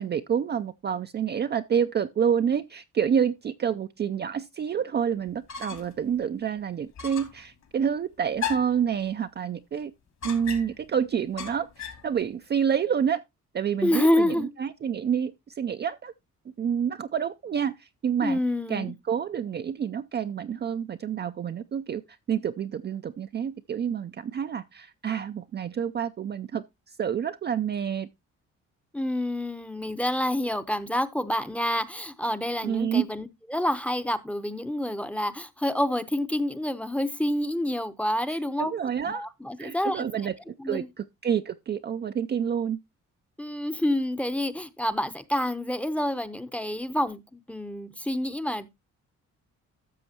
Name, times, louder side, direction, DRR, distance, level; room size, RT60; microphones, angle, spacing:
voice 1, 0.0-9.9 10.2-13.2 13.5-16.1 16.6-18.4 18.7-22.0 22.3-26.6 27.0-28.1 32.6-33.1 38.6-39.3 39.6-42.8, right 8 dB, 35° right, 0.4 m, -28 dB
sound 1, 5.3-6.0 6.4-6.5 7.0-7.4 8.4-8.8 10.2-10.9 11.4-12.1, left 7 dB, 60° left, 2.6 m, -35 dB
voice 2, 13.8-14.5 18.2-18.9 28.9-38.7 39.0-40.1 40.6-40.9 43.4-48.7, left 1 dB, 5° left, 0.7 m, -28 dB
13.0 x 6.3 x 2.8 m
cardioid pair, 90°, 30 cm